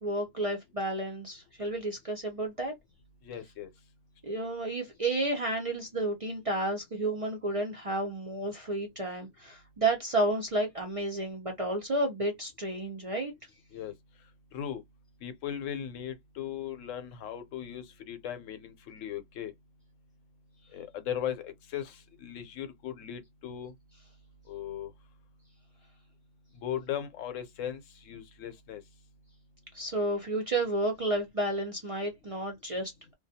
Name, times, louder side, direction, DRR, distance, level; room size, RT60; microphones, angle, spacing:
voice 1, 0.0-2.7 4.2-13.3 29.7-32.9, right 2 dB, 45° right, 0.4 m, -31 dB
voice 2, 3.2-3.7 13.7-13.9 14.5-14.8 15.2-19.5 20.7-22.0 22.2-23.7 24.5-24.9 26.6-27.8 28.1-28.8, left 9 dB, 85° left, 1.0 m, -37 dB
2.3 x 2.2 x 2.6 m
omnidirectional pair, 1.3 m